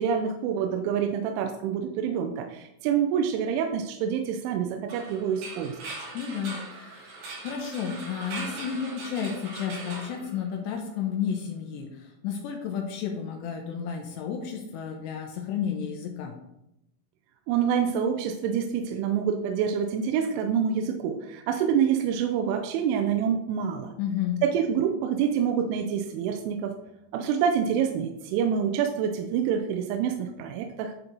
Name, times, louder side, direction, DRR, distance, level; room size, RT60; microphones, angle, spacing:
voice 1, 0.0-5.8 17.5-23.9 24.4-26.7 27.1-30.9, right 7 dB, 85° right, 5 dB, 2.9 m, -27 dB
sound 1, 4.9-10.9, right 3 dB, 60° right, 5.1 m, -40 dB
voice 2, 6.1-16.3 24.0-24.4, left 7 dB, 85° left, 2 dB, 2.5 m, -32 dB
10.5 x 4.5 x 3.9 m, 0.84 s
omnidirectional pair, 5.9 m